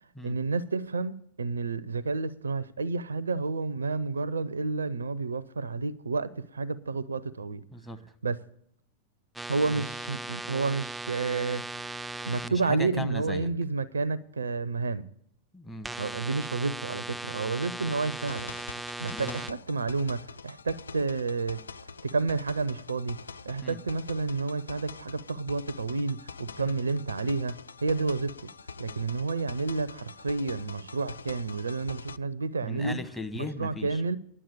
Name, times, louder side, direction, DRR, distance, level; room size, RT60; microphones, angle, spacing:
voice 1, 0.2-7.6 8.2-8.4 9.5-15.0 16.0-18.5 19.0-21.6 22.0-23.2 23.4-28.4 28.8-33.0 33.6-34.2, right 3 dB, 75° right, 0.5 m, -30 dB
voice 2, 7.7-8.0 9.7-9.8 12.4-13.5 15.5-15.9 19.1-19.4 23.6-23.8 26.6-26.7 32.6-34.0, left 2 dB, 10° left, 1.0 m, -38 dB
sound 1, 9.3-12.5 15.8-19.5, right 2 dB, 5° right, 0.4 m, -38 dB
sound 2, 18.1-32.2, left 4 dB, 75° left, 0.4 m, -44 dB
11.0 x 7.5 x 8.3 m
figure-of-eight pair, 90°, 0 cm